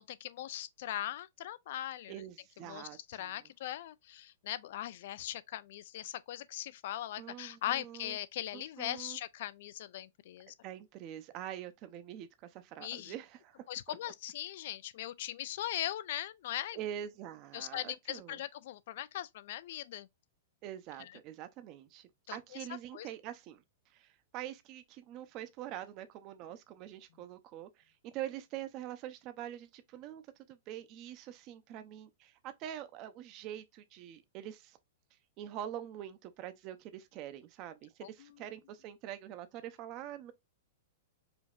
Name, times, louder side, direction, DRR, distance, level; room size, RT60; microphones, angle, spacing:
voice 1, 0.0-2.1 2.6-10.5 12.8-13.1 13.7-16.8 17.5-20.1 21.0-21.1 22.3-22.4 22.9-23.1 38.0-38.3, left 13 dB, 45° left, 0.3 m, -40 dB
voice 2, 2.1-3.4 7.2-8.2 8.5-9.2 10.6-14.0 16.7-18.4 20.6-23.6 23.9-30.2 30.5-34.8 35.4-40.3, right 11 dB, 25° right, 0.5 m, -45 dB
5.0 x 2.7 x 2.3 m
supercardioid pair, 180°, 0 cm